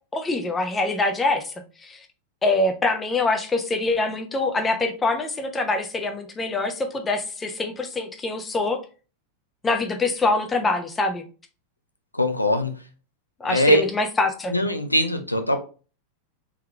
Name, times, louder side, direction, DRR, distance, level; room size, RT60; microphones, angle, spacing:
voice 1, 0.1-2.1 2.4-8.8 9.6-11.2 13.4-14.5, left 2 dB, 15° left, 0.7 m, -24 dB
voice 2, 12.2-12.7 13.5-13.8 14.5-15.6, equal, 85° left, 0.5 m, -21 dB
3.6 x 3.3 x 3.3 m
figure-of-eight pair, 90°, 0 cm